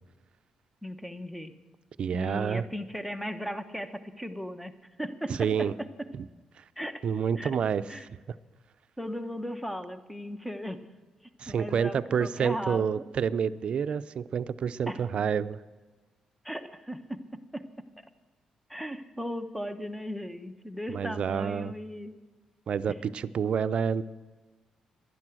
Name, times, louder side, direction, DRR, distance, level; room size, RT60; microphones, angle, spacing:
voice 1, 0.8-1.5 2.1-4.7 5.0-5.9 6.8-7.0 7.4-7.5 7.9-8.1 9.0-10.8 11.5-12.8 14.9-15.0 16.4-17.2 17.5-17.6 18.7-22.1, equal, ahead, 10 dB, 1.0 m, -36 dB
voice 2, 2.0-2.6 5.3-5.7 6.2-6.3 6.6-6.7 7.0-7.8 8.3-8.4 11.4-15.6 20.9-21.7 22.7-24.0, right 7 dB, 55° right, 14 dB, 0.5 m, -28 dB
11.5 x 10.5 x 7.6 m, 1.3 s
cardioid pair, 90°, 2 cm